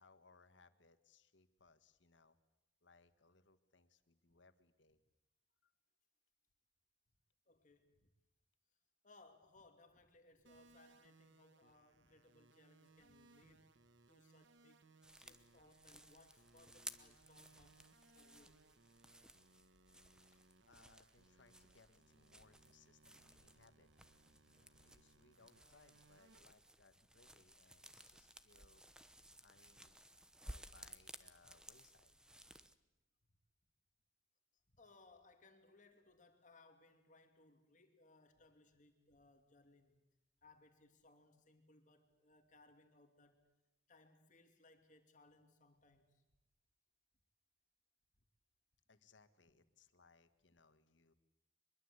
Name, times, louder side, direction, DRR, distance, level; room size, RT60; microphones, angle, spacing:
voice 1, 0.0-2.4 2.8-5.0 5.6-5.7 20.2-23.9 24.6-28.8 29.4-30.1 30.4-32.4 48.9-51.1, left 4 dB, 85° left, 10 dB, 1.7 m, -69 dB
voice 2, 7.5-8.1 9.0-13.7 14.1-14.8 15.2-17.9 18.1-18.5 24.5-24.7 34.7-40.1 40.4-43.5 43.9-46.2, left 2 dB, 45° left, 5 dB, 2.7 m, -67 dB
sound 1, 10.5-26.4, right 3 dB, 90° right, 1.2 m, -69 dB
sound 2, 15.0-32.8, right 1 dB, 5° right, 1.0 m, -58 dB
24.0 x 22.0 x 8.2 m, 0.95 s
head